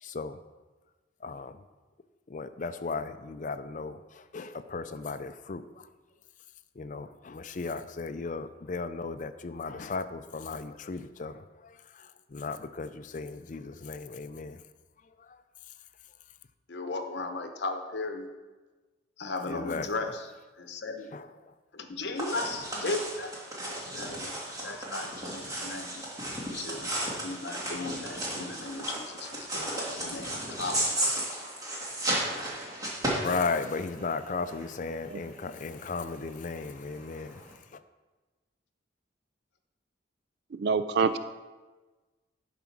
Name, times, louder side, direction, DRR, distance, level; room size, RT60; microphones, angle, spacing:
voice 1, 0.0-0.4 1.2-1.6 2.3-5.6 6.8-14.6 19.5-19.9 21.1-21.3 33.2-37.4, left 4 dB, 40° left, 12 dB, 0.4 m, -36 dB
voice 2, 16.7-18.3 19.2-21.1 21.7-23.3 23.6-24.3 24.6-26.0 26.4-30.8, left 3 dB, 60° left, 6 dB, 0.9 m, -36 dB
sound 1, 22.2-37.5, right 1 dB, 20° right, 2.2 m, -34 dB
voice 3, 40.5-41.2, right 5 dB, 60° right, 11 dB, 0.4 m, -26 dB
11.0 x 5.0 x 5.9 m, 1.3 s
head